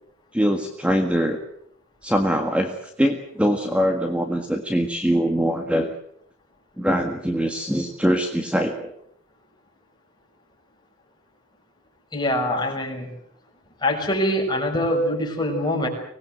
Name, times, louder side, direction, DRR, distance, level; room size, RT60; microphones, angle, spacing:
voice 1, 0.3-1.4 2.0-5.9 6.8-8.9, equal, 5° right, 4 dB, 1.7 m, -23 dB
voice 2, 12.1-13.1 13.8-15.9, left 1 dB, 20° left, 1 dB, 6.4 m, -23 dB
25.0 x 20.0 x 8.0 m, 0.70 s
head